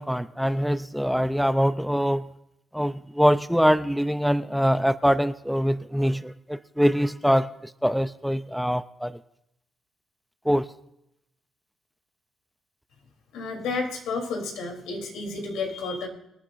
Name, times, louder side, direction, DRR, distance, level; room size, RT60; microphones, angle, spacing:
voice 1, 0.0-2.3 2.7-7.5 7.8-9.1 10.5-10.7, equal, ahead, 12 dB, 0.5 m, -23 dB
voice 2, 13.3-16.1, left 3 dB, 90° left, 3 dB, 3.3 m, -31 dB
25.0 x 9.6 x 2.6 m, 0.82 s
cardioid pair, 90°, 0 cm